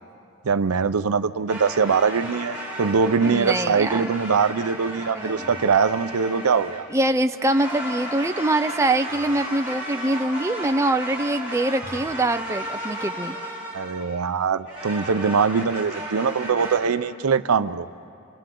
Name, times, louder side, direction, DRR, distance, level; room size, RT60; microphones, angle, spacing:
voice 1, 0.4-6.9 13.7-17.9, right 5 dB, 75° right, 12 dB, 0.6 m, -22 dB
sound 1, 1.5-7.0 7.4-14.2 14.7-16.8, equal, 55° left, 5.0 m, -34 dB
voice 2, 3.2-4.1 5.1-5.5 6.9-13.4, right 2 dB, 15° right, 7 dB, 0.4 m, -24 dB
29.5 x 27.5 x 3.8 m, 2.6 s
head